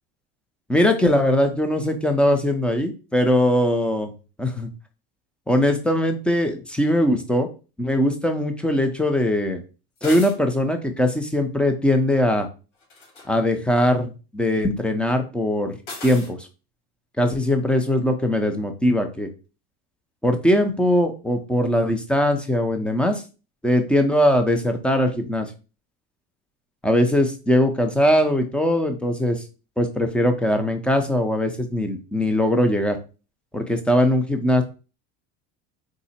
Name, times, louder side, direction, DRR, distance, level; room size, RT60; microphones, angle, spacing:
voice 1, 0.7-4.1 4.4-4.7 5.5-7.5 7.8-9.6 10.0-12.5 13.3-15.8 16.0-16.4 17.2-19.3 20.2-23.2 23.6-25.5 26.8-29.4 29.8-33.0 33.5-34.6, left 1 dB, 5° left, 6 dB, 0.5 m, -21 dB
sound 1, 10.0-10.4 12.8-13.3 15.9-16.3, left 2 dB, 80° left, 1.8 m, -36 dB
3.7 x 2.0 x 4.2 m, 0.33 s
supercardioid pair, 120°, 34 cm